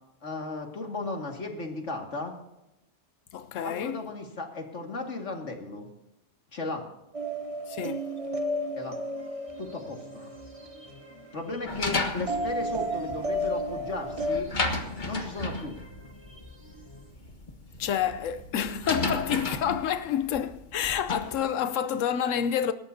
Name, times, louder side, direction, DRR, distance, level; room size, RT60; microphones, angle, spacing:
voice 1, 0.2-2.3 3.6-5.9 6.5-6.9 8.8-9.0 9.6-10.3 11.3-14.5 15.0-15.8, left 3 dB, 70° left, 2.4 m, -35 dB
voice 2, 3.3-4.0 7.7-8.1 17.8-22.7, left 9 dB, 90° left, 1.0 m, -28 dB
sound 1, 7.1-11.1 12.3-14.4, equal, 30° right, 0.9 m, -32 dB
sound 2, 9.1-17.1, equal, 20° left, 3.1 m, -53 dB
sound 3, 11.7-21.4, left 2 dB, 40° left, 1.6 m, -34 dB
25.0 x 13.0 x 2.8 m
omnidirectional pair, 1.3 m